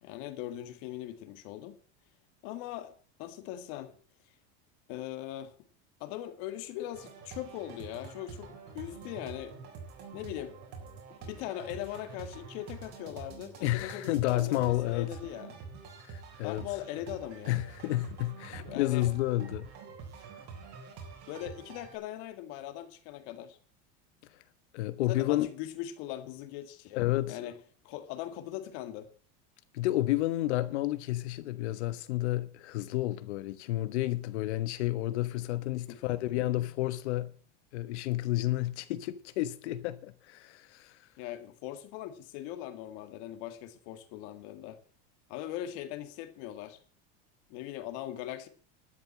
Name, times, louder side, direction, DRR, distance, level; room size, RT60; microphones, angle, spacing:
voice 1, 0.0-1.8 2.4-2.9 3.2-4.0 4.9-5.6 6.0-9.6 10.1-10.6 11.2-15.6 16.4-17.6 18.6-19.1 21.3-23.6 25.1-27.5 27.8-29.1 35.9-36.0 41.2-44.8 45.3-46.8 47.5-48.5, left 12 dB, 60° left, 2.0 m, -40 dB
sound 1, 6.9-22.0, right 5 dB, 50° right, 4.1 m, -47 dB
voice 2, 13.6-15.1 16.1-16.6 17.5-19.7 24.7-25.5 27.0-27.5 29.7-37.3 37.7-41.0, left 16 dB, 80° left, 1.3 m, -31 dB
12.0 x 7.2 x 7.4 m
supercardioid pair, 140°, 33 cm